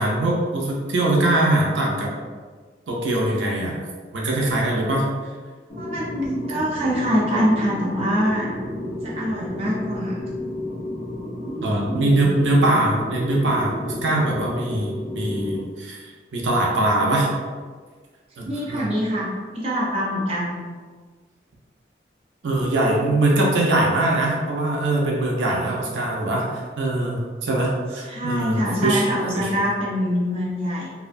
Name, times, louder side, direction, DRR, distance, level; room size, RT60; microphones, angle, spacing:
voice 1, 0.0-2.1 2.9-3.8 4.1-5.1 11.6-16.0 16.3-17.3 18.4-18.8 22.4-29.0 29.3-29.5, right 1 dB, 85° right, -2 dB, 0.5 m, -22 dB
sound 1, 5.7-15.6, left 1 dB, 45° left, 0.7 m, -32 dB
voice 2, 5.7-8.5 9.0-10.2 11.4-12.3 18.5-20.6 28.1-30.9, equal, 35° right, -6 dB, 0.5 m, -24 dB
2.4 x 2.2 x 2.5 m, 1.5 s
head